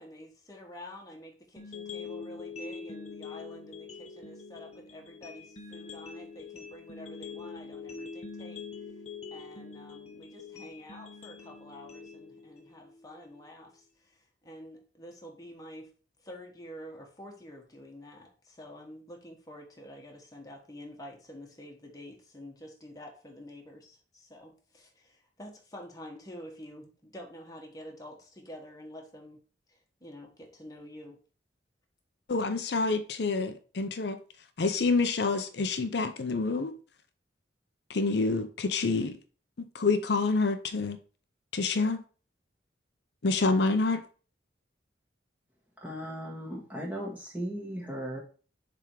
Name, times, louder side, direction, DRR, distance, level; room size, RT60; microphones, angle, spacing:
voice 1, 0.0-8.6 9.3-15.9 16.2-29.4 29.7-31.2, equal, 20° left, 0 dB, 1.3 m, -48 dB
sound 1, 1.6-13.6, left 5 dB, 35° left, 0.9 m, -44 dB
voice 2, 32.3-34.2 34.6-36.7 37.9-39.1 39.6-41.0 41.5-42.0 43.2-44.0, left 3 dB, 60° left, 9 dB, 0.6 m, -27 dB
voice 3, 45.8-48.2, equal, 10° right, -2 dB, 1.6 m, -37 dB
7.1 x 3.5 x 4.7 m, 0.39 s
head